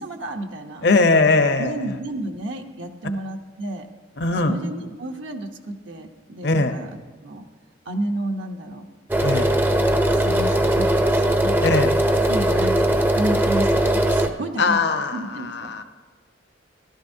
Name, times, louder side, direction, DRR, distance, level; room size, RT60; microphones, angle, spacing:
voice 1, 0.0-0.9 1.6-3.9 4.4-6.9 7.2-7.5 7.9-8.8 10.0-11.7 12.3-15.7, right 1 dB, 75° right, 3 dB, 0.9 m, -31 dB
voice 2, 0.8-1.7 4.2-4.6 6.4-6.7 9.2-9.5 11.6-11.9 14.6-15.8, left 3 dB, 60° left, 8 dB, 0.8 m, -20 dB
sound 1, 9.1-14.3, right 1 dB, 10° right, 0.5 m, -20 dB
15.5 x 12.5 x 2.7 m, 1.5 s
head